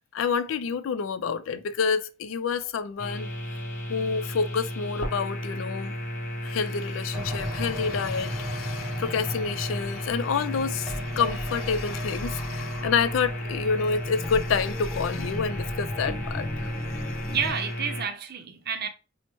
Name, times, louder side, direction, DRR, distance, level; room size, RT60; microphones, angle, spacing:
voice 1, 0.1-3.3 3.9-6.0 6.4-17.4, left 6 dB, 85° left, 0.4 m, -28 dB
sound 1, 3.0-18.0, left 1 dB, 45° left, 0.8 m, -34 dB
sound 2, 7.1-17.5, left 1 dB, 5° left, 0.6 m, -37 dB
voice 2, 17.3-18.9, right 7 dB, 55° right, 0.6 m, -30 dB
4.3 x 2.1 x 3.0 m
head